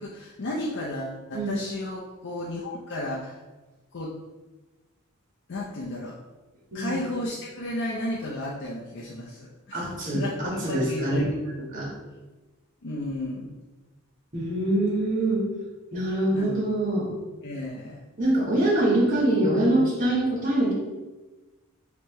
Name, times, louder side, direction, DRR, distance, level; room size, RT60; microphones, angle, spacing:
voice 1, 0.0-3.4 3.9-4.1 5.5-6.2 6.7-9.9 10.1-11.3 12.8-13.5 16.3-16.5 17.4-18.0, left 1 dB, 55° left, -3 dB, 0.5 m, -33 dB
voice 2, 9.7-11.2 11.7-11.9 14.3-15.4 15.9-17.1 18.2-20.7, right 1 dB, 40° right, -6 dB, 1.5 m, -24 dB
3.2 x 3.0 x 4.7 m, 1.2 s
head